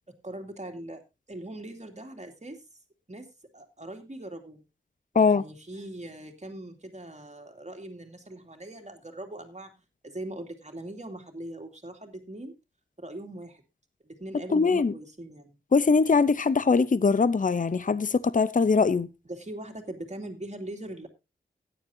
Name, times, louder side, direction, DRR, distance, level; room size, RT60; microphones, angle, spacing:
voice 1, 0.2-1.0 1.3-2.6 3.1-3.3 3.5-4.6 5.1-9.7 10.0-12.5 13.0-13.6 14.0-15.5 19.3-21.1, right 1 dB, 35° right, 2.6 m, -41 dB
voice 2, 14.5-14.9 15.7-19.1, left 4 dB, 40° left, 0.6 m, -22 dB
16.0 x 10.0 x 2.7 m
wide cardioid pair, 70°, 20 cm